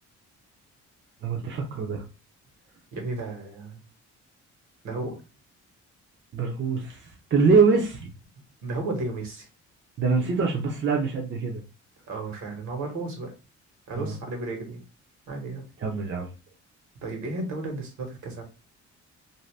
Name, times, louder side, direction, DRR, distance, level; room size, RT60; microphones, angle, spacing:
voice 1, 1.2-2.0 6.3-7.0 7.3-8.1 10.0-11.6 13.9-14.1 15.8-16.3, right 4 dB, 40° right, 1 dB, 0.7 m, -24 dB
voice 2, 2.9-3.8 4.8-5.2 8.6-9.5 10.2-10.5 12.1-13.3 13.9-14.8 15.3-15.6 17.0-18.4, right 2 dB, 70° right, 3 dB, 1.3 m, -33 dB
2.7 x 2.2 x 3.3 m, 0.32 s
cardioid pair, 90°, 30 cm